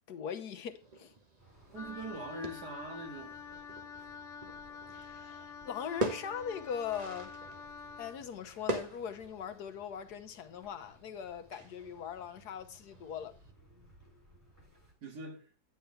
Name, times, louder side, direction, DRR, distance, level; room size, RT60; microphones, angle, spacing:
voice 1, 0.1-1.1 4.9-7.3 8.0-13.3, left 8 dB, 80° left, 1.5 m, -40 dB
sound 1, 0.7-13.5, right 2 dB, 30° right, 1.1 m, -44 dB
sound 2, 1.4-14.9, right 2 dB, 10° right, 6.0 m, -61 dB
voice 2, 1.7-3.6 15.0-15.5, right 2 dB, 75° right, 2.7 m, -43 dB
Wind instrument woodwind instrument, 1.8-8.2, left 6 dB, 60° left, 1.0 m, -48 dB
9.5 x 9.1 x 3.3 m
omnidirectional pair, 1.7 m